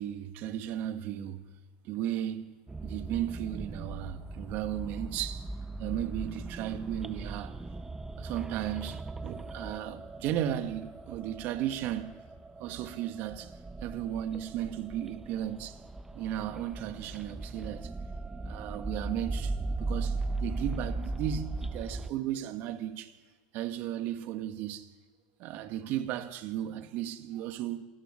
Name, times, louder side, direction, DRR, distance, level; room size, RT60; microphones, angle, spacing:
voice 1, 0.0-1.5 1.8-5.5 5.8-7.6 8.2-12.2 12.6-13.5 13.8-15.8 16.1-17.9 18.4-23.1 23.5-24.9 25.4-27.8, right 11 dB, 50° right, 1.7 m, -35 dB
sound 1, 2.7-22.1, right 2 dB, 10° right, 0.7 m, -38 dB
27.0 x 12.5 x 9.9 m
supercardioid pair, 130°, 4 cm